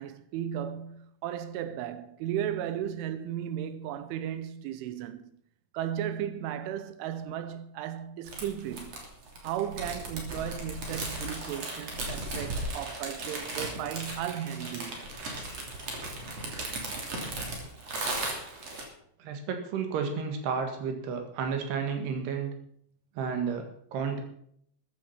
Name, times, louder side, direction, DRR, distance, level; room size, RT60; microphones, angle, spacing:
voice 1, 0.0-5.3 5.7-9.0 9.4-15.0, right 10 dB, 80° right, 3.2 m, -35 dB
sound 1, 8.2-18.8, right 2 dB, 35° right, 3.4 m, -36 dB
voice 2, 19.2-22.5 23.2-24.2, right 6 dB, 65° right, 3.5 m, -32 dB
14.0 x 10.0 x 5.7 m
omnidirectional pair, 5.7 m